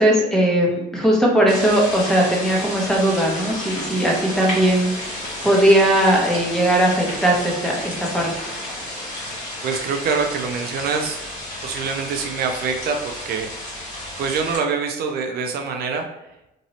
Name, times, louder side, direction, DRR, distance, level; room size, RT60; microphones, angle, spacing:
voice 1, 0.0-4.9 5.4-8.5, right 1 dB, 5° left, -2 dB, 0.9 m, -18 dB
sound 1, 1.5-14.6, left 1 dB, 45° left, 1.4 m, -32 dB
voice 2, 9.6-11.2 11.6-13.5 14.2-16.1, right 5 dB, 65° right, 4 dB, 0.5 m, -25 dB
3.0 x 2.6 x 2.8 m, 0.92 s
cardioid pair, 110°, 17 cm